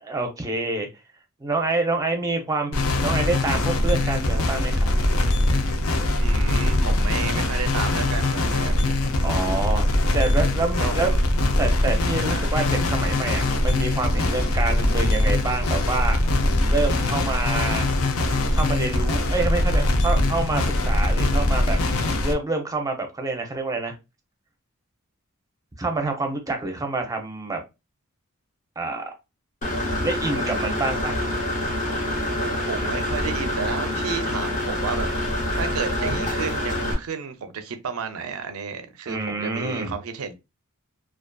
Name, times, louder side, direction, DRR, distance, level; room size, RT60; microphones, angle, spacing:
voice 1, 0.1-0.9 1.4-4.9 9.2-9.9 10.1-11.1 11.6-16.2 16.7-17.9 18.5-21.8 22.2-23.9 25.8-27.6 28.8-29.1 30.0-31.2 39.1-40.0, right 3 dB, 15° right, 0.5 m, -27 dB
sound 1, 2.7-22.3, left 1 dB, 70° left, 0.5 m, -22 dB
voice 2, 6.2-9.0 10.8-11.2 12.3-12.5 32.4-40.3, right 6 dB, 75° right, 0.5 m, -32 dB
Engine / Mechanisms, 29.6-36.9, left 1 dB, 35° left, 0.8 m, -26 dB
2.6 x 2.4 x 2.2 m
head